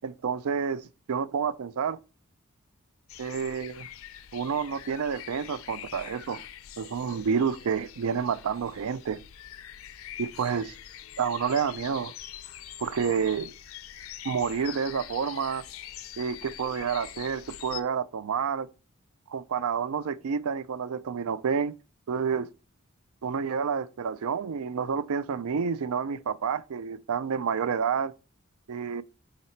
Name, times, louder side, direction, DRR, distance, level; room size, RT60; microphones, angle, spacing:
voice 1, 0.0-2.0 3.2-3.9 4.3-6.4 6.8-9.2 10.2-10.7 11.2-12.1 12.8-13.5 14.2-15.6 16.2-18.7 19.3-21.7 22.1-22.5 23.2-28.1 28.7-29.0, right 6 dB, 85° right, 0.4 m, -29 dB
sound 1, 3.1-17.8, left 11 dB, 70° left, 0.5 m, -44 dB
5.8 x 4.0 x 4.5 m
head